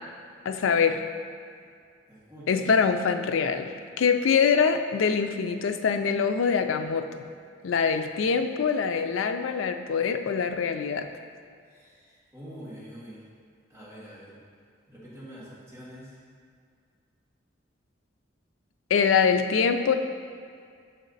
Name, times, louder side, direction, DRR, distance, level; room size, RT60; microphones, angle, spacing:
voice 1, 0.5-1.0 2.5-7.3 7.6-11.1 18.9-19.9, left 6 dB, 85° left, 7 dB, 0.4 m, -24 dB
voice 2, 2.1-2.8 11.7-13.2 13.7-14.3 14.9-16.2, equal, 15° right, -9 dB, 1.5 m, -45 dB
6.4 x 4.1 x 4.0 m, 2.2 s
head